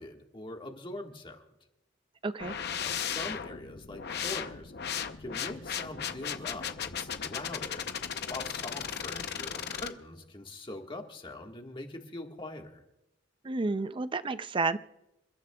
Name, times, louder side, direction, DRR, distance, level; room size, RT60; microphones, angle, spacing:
voice 1, 0.0-1.4 2.8-7.8 8.3-12.8, left 2 dB, 25° left, 1.6 m, -43 dB
voice 2, 2.2-2.6 13.4-14.8, right 3 dB, 25° right, 0.5 m, -30 dB
sound 1, 2.4-9.9, left 8 dB, 60° left, 0.7 m, -36 dB
28.5 x 13.5 x 2.3 m
head